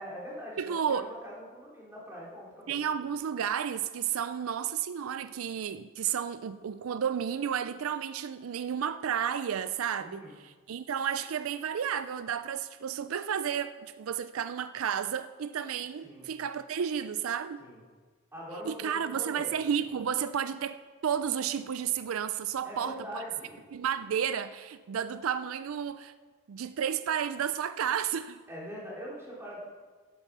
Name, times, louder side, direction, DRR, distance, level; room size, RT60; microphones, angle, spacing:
voice 1, 0.0-2.8 10.0-10.4 16.0-16.3 17.6-17.8 18.3-19.6 19.8-19.9 22.6-23.6 28.5-29.7, equal, 10° right, 3.4 m, -43 dB
voice 2, 0.6-1.1 2.7-17.6 18.6-23.2 23.7-26.1 26.5-28.4, right 8 dB, 80° right, 0.4 m, -32 dB
11.0 x 9.9 x 6.0 m
head